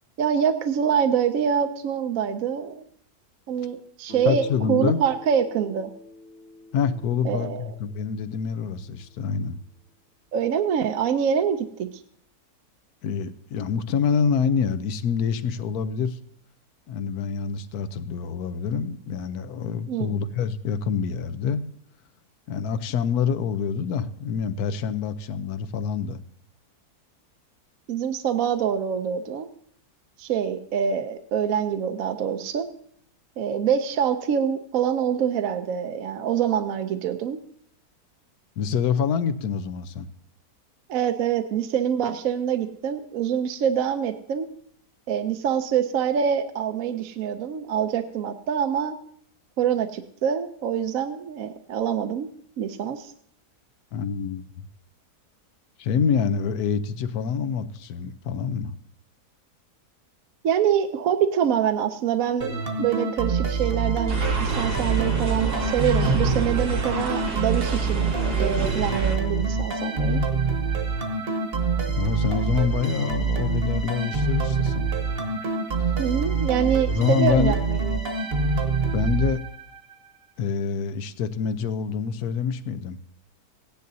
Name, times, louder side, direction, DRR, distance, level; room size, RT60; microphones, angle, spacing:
voice 1, 0.2-2.8 3.5-5.9 7.2-7.7 10.3-11.9 19.9-20.2 27.9-29.5 30.2-32.7 33.4-37.4 40.9-44.5 45.1-48.9 49.6-52.3 52.6-53.1 60.4-68.1 68.4-70.2 76.0-78.1, right 8 dB, 65° right, 7 dB, 1.0 m, -25 dB
Guitar, 4.1-8.9, left 2 dB, 55° left, 2.6 m, -44 dB
voice 2, 4.2-5.0 6.7-9.6 13.0-16.2 16.9-21.6 22.5-26.2 38.6-40.1 53.9-54.6 55.8-58.8 71.9-74.9 75.8-75.9 76.9-77.6 78.9-79.4 80.4-83.0, left 6 dB, 75° left, 11 dB, 1.2 m, -26 dB
sound 1, 62.4-79.9, right 4 dB, 40° right, 1.2 m, -26 dB
sound 2, 64.1-69.2, right 3 dB, 90° right, 2.0 m, -28 dB
16.5 x 10.5 x 2.7 m, 0.65 s
omnidirectional pair, 1.7 m